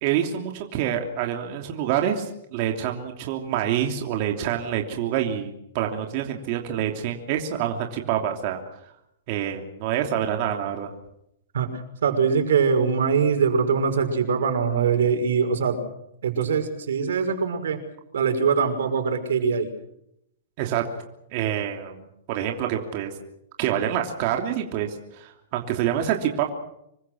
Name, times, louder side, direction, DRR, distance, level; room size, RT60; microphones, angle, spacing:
voice 1, 0.0-8.6 9.3-10.9 20.6-20.8 21.3-23.1 23.6-26.5, right 10 dB, 35° right, 3 dB, 3.0 m, -27 dB
voice 2, 11.5-15.8 16.2-17.8 18.1-19.7, right 6 dB, 85° right, 6 dB, 5.8 m, -22 dB
26.5 x 23.5 x 6.4 m, 0.77 s
hypercardioid pair, 170°, 0 cm